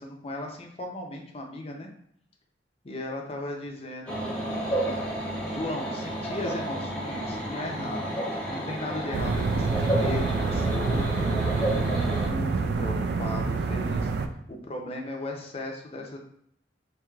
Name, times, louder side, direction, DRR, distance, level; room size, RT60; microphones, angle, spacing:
voice 1, 0.0-1.9 2.8-4.6 5.4-8.2 8.4-11.4 11.9-14.1 14.5-16.2, left 1 dB, 35° left, 1 dB, 0.5 m, -37 dB
sound 1, 4.1-12.3, right 1 dB, 5° left, 0.8 m, -31 dB
sound 2, 9.1-14.3, right 4 dB, 60° right, 0.3 m, -27 dB
4.5 x 2.7 x 2.3 m, 0.70 s
head